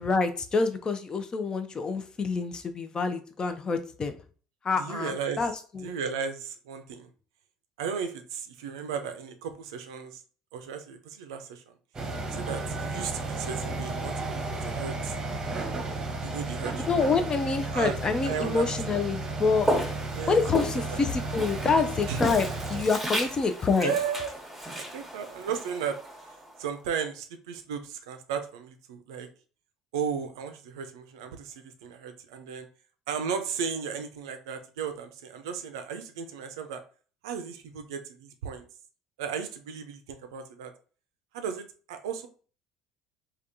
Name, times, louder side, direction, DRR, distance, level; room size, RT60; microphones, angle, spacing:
voice 1, 0.0-4.2 4.6-5.9 16.8-19.7 20.3-23.9, left 4 dB, 30° left, 8 dB, 0.5 m, -27 dB
voice 2, 4.7-5.5 5.8-7.1 7.8-10.2 10.5-11.6 12.3-15.1 16.2-17.0 17.7-18.0 18.2-18.7 20.1-21.0 22.1-22.2 23.8-24.3 24.8-26.0 26.6-29.3 29.9-32.7 33.1-36.8 37.2-38.7 39.2-40.7 41.3-42.3, right 7 dB, 75° right, 7 dB, 0.4 m, -35 dB
sound 1, 11.9-22.8, right 2 dB, 25° right, 0.9 m, -33 dB
Walk footsteps, 19.6-26.7, right 1 dB, ahead, 1.0 m, -34 dB
3.4 x 2.3 x 2.6 m, 0.40 s
hypercardioid pair, 65°, 3 cm